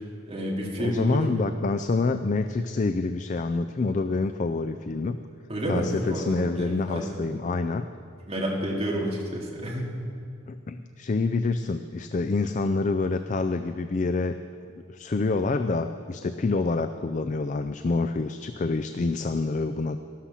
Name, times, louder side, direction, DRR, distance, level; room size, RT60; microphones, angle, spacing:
voice 1, 0.3-1.2 5.5-7.1 8.3-9.9, equal, 30° right, -3 dB, 2.4 m, -29 dB
voice 2, 0.8-5.2 5.7-7.9 10.5-14.4 14.6-20.0, left 3 dB, 40° left, 9 dB, 0.4 m, -27 dB
13.5 x 13.0 x 5.7 m, 2.5 s
head